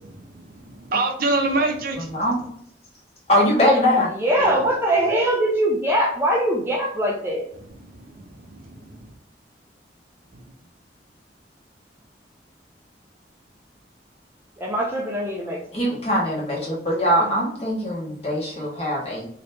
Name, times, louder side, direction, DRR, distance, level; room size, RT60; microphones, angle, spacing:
voice 1, 0.3-2.1 4.4-4.5 8.1-9.0, right 2 dB, 55° right, 0.6 m, -26 dB
voice 2, 2.0-2.5 3.3-4.1 15.7-19.3, equal, 40° left, 1.4 m, -22 dB
voice 3, 4.1-7.4 14.6-15.6 17.2-17.3, right 1 dB, 15° right, 0.5 m, -22 dB
3.0 x 2.9 x 3.3 m
head